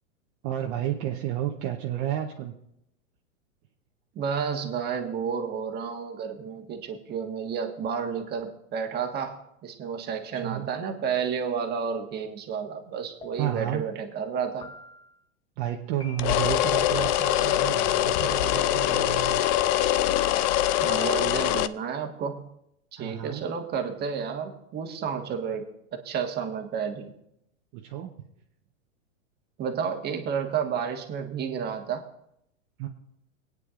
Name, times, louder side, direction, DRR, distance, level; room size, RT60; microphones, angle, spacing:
voice 1, 0.4-2.5 10.4-10.7 13.4-13.8 15.6-19.4 23.0-23.5 25.3-25.4 27.7-28.1 32.8-32.9, right 11 dB, 40° right, 1 dB, 1.0 m, -31 dB
voice 2, 4.1-14.7 20.8-22.5 22.9-25.7 26.0-27.1 29.6-32.0, right 6 dB, 25° right, 4 dB, 1.5 m, -31 dB
sound 1, 13.2-13.8 14.6-15.2 16.0-16.6 17.3-17.9, left 3 dB, 15° left, 0.9 m, -48 dB
sound 2, 16.2-21.7, left 13 dB, 35° left, 0.4 m, -23 dB
21.5 x 9.4 x 2.5 m, 0.77 s
hypercardioid pair, 135°, 39 cm